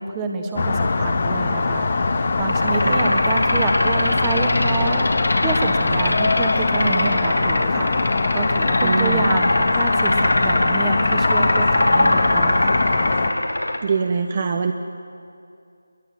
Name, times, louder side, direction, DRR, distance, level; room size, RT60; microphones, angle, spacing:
voice 1, 0.0-12.8, right 4 dB, 10° right, 3 dB, 1.7 m, -27 dB
sound 1, 0.6-13.3, left 3 dB, 35° left, 1.4 m, -22 dB
sound 2, 2.5-13.8, left 1 dB, 70° left, 2.8 m, -22 dB
voice 2, 8.8-9.3 13.8-14.7, right 5 dB, 30° right, 5 dB, 1.1 m, -23 dB
27.5 x 22.5 x 7.4 m, 2.4 s
figure-of-eight pair, 160°, 0 cm